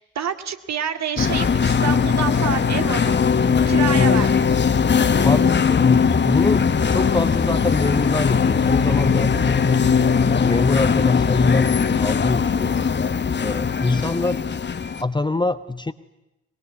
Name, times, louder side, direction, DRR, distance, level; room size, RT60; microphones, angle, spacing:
voice 1, 0.0-3.3 3.7-4.6 9.8-10.1 13.9-14.1, right 7 dB, 45° right, 8 dB, 2.1 m, -28 dB
sound 1, 1.2-15.0, left 6 dB, 30° left, 1.4 m, -19 dB
voice 2, 5.1-9.9 10.3-12.8 13.4-14.4 15.0-15.9, left 3 dB, 10° left, 12 dB, 1.0 m, -24 dB
24.0 x 21.5 x 9.6 m, 0.94 s
figure-of-eight pair, 50°, 37 cm